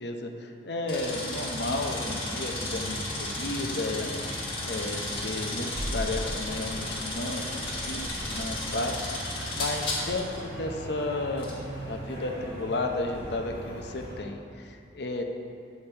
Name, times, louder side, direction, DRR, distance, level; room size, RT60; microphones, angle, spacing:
voice 1, 0.0-4.1 4.6-7.5 7.8-11.5 11.8-15.2, left 2 dB, 60° left, 4 dB, 0.7 m, -33 dB
sound 1, 0.9-10.4 11.4-11.6, left 2 dB, 30° left, 1.7 m, -34 dB
sound 2, 1.5-14.2, equal, 50° right, 2.3 m, -40 dB
8.7 x 7.1 x 4.4 m, 2.4 s
head